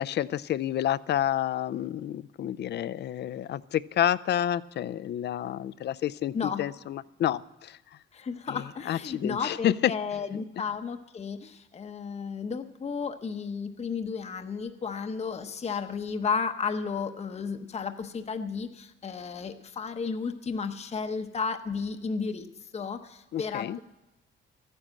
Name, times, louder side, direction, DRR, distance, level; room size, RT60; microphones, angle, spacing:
voice 1, 0.0-7.8 8.5-8.6 8.9-9.7 23.3-23.8, left 11 dB, 55° left, 16 dB, 0.4 m, -29 dB
voice 2, 6.3-6.6 8.1-23.8, left 5 dB, 30° left, 7 dB, 0.8 m, -33 dB
13.5 x 9.8 x 7.5 m, 0.94 s
cardioid pair, 110°, 20 cm